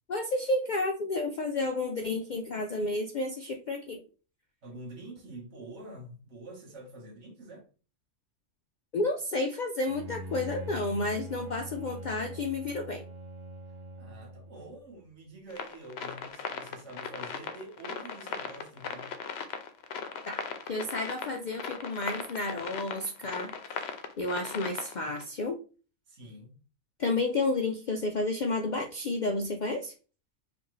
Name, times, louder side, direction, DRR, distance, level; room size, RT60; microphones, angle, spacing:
voice 1, 0.1-4.0 8.9-13.1 20.3-20.4 20.7-23.5 24.2-25.6 27.0-29.9, left 2 dB, 90° left, 0.4 m, -31 dB
voice 2, 4.6-7.7 14.0-19.1 26.1-26.6, right 1 dB, 55° right, 1.6 m, -46 dB
Bowed string instrument, 9.9-14.8, right 1 dB, 25° right, 0.7 m, -43 dB
sound 1, 15.5-25.2, left 6 dB, 60° left, 0.7 m, -38 dB
4.9 x 2.6 x 3.2 m
omnidirectional pair, 1.4 m